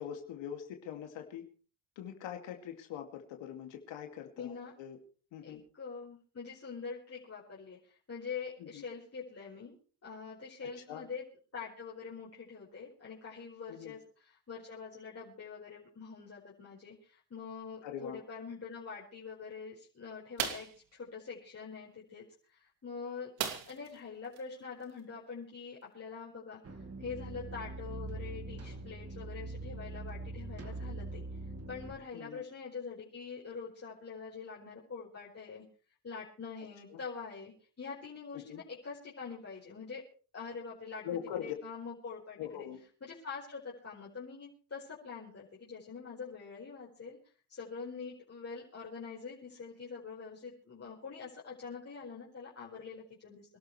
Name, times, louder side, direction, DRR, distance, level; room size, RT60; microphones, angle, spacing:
voice 1, 0.0-1.5 2.0-5.0 5.3-5.6 8.6-8.8 10.9-11.0 13.7-13.9 17.8-18.2 32.1-32.4 36.9-37.0 38.3-38.6 41.0-41.5 42.4-42.8, left 9 dB, 85° left, 4 dB, 2.4 m, -42 dB
voice 2, 4.4-4.7 5.4-9.8 10.0-11.2 11.5-23.3 23.6-31.2 31.7-35.6 36.0-40.0 40.3-42.7 43.0-47.2 47.5-53.6, left 5 dB, 35° left, -5 dB, 4.8 m, -45 dB
sound 1, 20.4-20.8 23.4-24.0 24.3-24.4 24.8-25.0, right 9 dB, 90° right, 2.7 m, -36 dB
sound 2, 26.6-32.0, right 2 dB, 35° right, 2.8 m, -42 dB
26.5 x 12.5 x 3.3 m, 0.39 s
cardioid pair, 95°, 44 cm